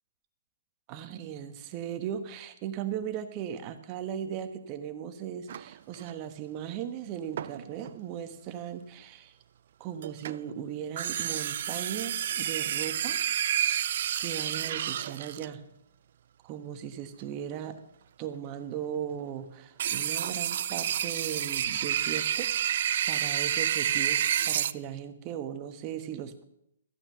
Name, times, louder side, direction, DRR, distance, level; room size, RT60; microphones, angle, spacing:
voice 1, 0.9-9.3 9.8-13.2 14.2-15.6 16.4-17.8 18.2-26.4, right 9 dB, 30° right, 9 dB, 1.3 m, -38 dB
sound 1, 5.5-6.1 7.4-7.9 10.0-10.5 11.0-15.5 19.8-24.7, right 10 dB, 55° right, 0.5 m, -29 dB
14.0 x 8.9 x 5.7 m, 0.77 s
hypercardioid pair, 135°, 0 cm